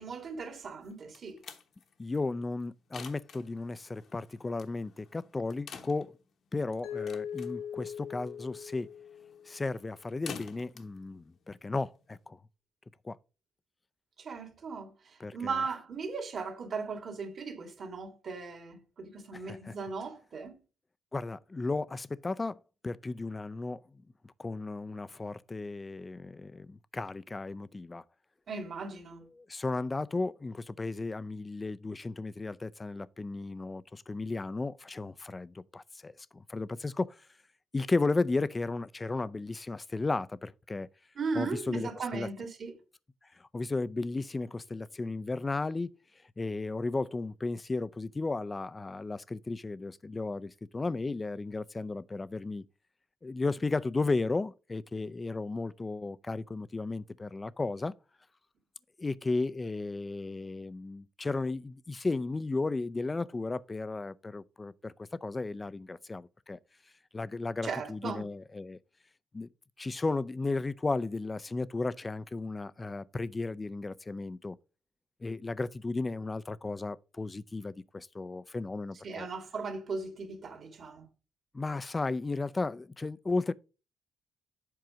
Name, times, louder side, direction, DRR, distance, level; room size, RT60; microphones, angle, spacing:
voice 1, 0.0-1.4 14.2-14.9 15.3-20.6 28.5-29.3 41.2-42.7 67.6-68.3 79.0-81.1, right 4 dB, 50° right, 2.0 m, -37 dB
sound 1, 0.8-12.3, left 6 dB, 60° left, 1.1 m, -50 dB
voice 2, 2.0-6.1 6.5-8.9 9.5-12.4 13.0-13.2 15.2-15.6 19.3-19.8 21.1-23.8 24.2-28.0 29.3-37.2 37.7-40.9 41.3-42.3 43.4-46.0 46.4-52.6 53.2-57.9 59.0-66.6 67.1-68.8 69.3-69.5 69.8-74.6 75.2-79.3 81.5-83.5, left 3 dB, 25° left, 0.4 m, -34 dB
Mallet percussion, 6.8-9.7, left 8 dB, 90° left, 1.7 m, -40 dB
7.7 x 4.6 x 5.0 m
cardioid pair, 90°, 0 cm